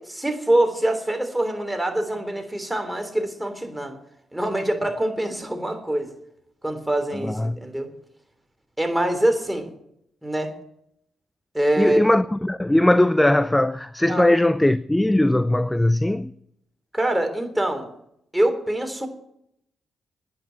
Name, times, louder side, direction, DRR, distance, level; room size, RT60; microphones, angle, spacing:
voice 1, 0.0-4.0 4.3-6.1 6.6-7.9 8.8-9.7 10.2-10.5 11.5-12.0 14.1-14.3 16.9-17.9 18.3-19.1, right 1 dB, 10° right, 3.4 m, -24 dB
voice 2, 7.2-7.6 11.8-16.3, left 1 dB, 10° left, 0.5 m, -19 dB
10.0 x 10.0 x 9.1 m
supercardioid pair, 55°, 0 cm